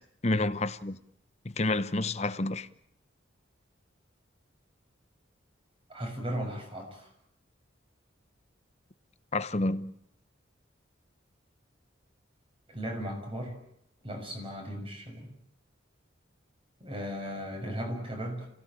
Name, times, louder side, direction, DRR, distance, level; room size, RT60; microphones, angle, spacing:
voice 1, 0.2-1.0 1.4-2.7 9.3-9.9, left 2 dB, 35° left, 0.9 m, -29 dB
voice 2, 5.9-7.1 12.7-13.6 14.0-15.4 16.8-18.5, equal, 30° right, 6.7 m, -36 dB
28.5 x 16.5 x 9.1 m
head